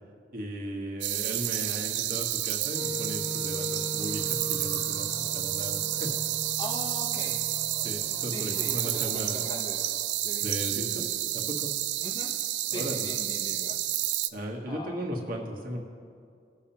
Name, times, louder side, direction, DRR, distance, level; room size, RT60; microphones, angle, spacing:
voice 1, 0.3-6.1 7.8-9.5 10.4-11.7 12.7-13.1 14.3-15.8, equal, 50° right, 0 dB, 1.4 m, -36 dB
sound 1, 1.0-14.3, right 14 dB, 70° right, 0.4 m, -30 dB
Wind instrument woodwind instrument, 2.7-8.8, left 1 dB, 10° right, 0.6 m, -40 dB
sound 2, 4.0-10.1, equal, 55° left, 1.3 m, -46 dB
voice 2, 6.6-7.4 8.3-9.8 10.2-10.6 12.0-12.3 12.7-13.9 14.7-15.0, left 1 dB, 25° left, 3 dB, 0.9 m, -40 dB
19.5 x 7.0 x 2.9 m, 2.3 s
head